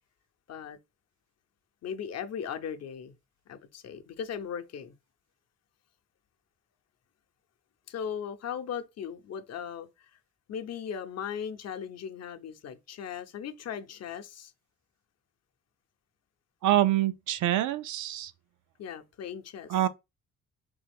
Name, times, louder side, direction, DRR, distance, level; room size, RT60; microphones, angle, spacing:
voice 1, 1.8-3.1 3.5-5.0 7.9-10.1 10.5-14.5 18.8-19.8, left 8 dB, 55° left, 0.7 m, -38 dB
voice 2, 16.6-18.3 19.7-19.9, right 13 dB, 75° right, 0.6 m, -25 dB
3.5 x 3.3 x 3.5 m
cardioid pair, 90°, 30 cm